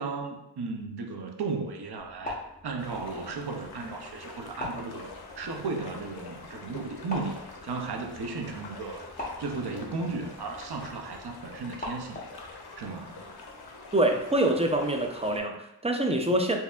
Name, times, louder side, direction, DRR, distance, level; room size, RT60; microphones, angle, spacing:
voice 1, 0.0-5.1 5.4-9.1 9.4-12.2 12.8-13.3, right 4 dB, 70° right, 3 dB, 0.6 m, -35 dB
sound 1, 2.0-12.5, left 1 dB, 20° left, 0.8 m, -44 dB
sound 2, 2.8-15.4, left 3 dB, 65° left, 0.6 m, -45 dB
voice 2, 13.9-16.6, right 1 dB, 15° right, 3 dB, 0.4 m, -25 dB
4.4 x 2.6 x 2.3 m, 0.87 s
wide cardioid pair, 80°, 41 cm